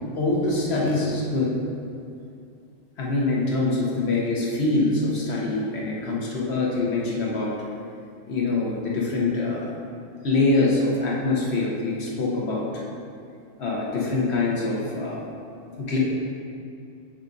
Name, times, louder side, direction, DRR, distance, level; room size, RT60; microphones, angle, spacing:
voice 1, 0.2-1.6 3.0-7.5 8.3-9.7 10.2-12.8 13.6-15.2 15.8-16.0, left 2 dB, 45° left, -4 dB, 0.9 m, -24 dB
7.1 x 3.6 x 3.9 m, 2.6 s
omnidirectional pair, 2.2 m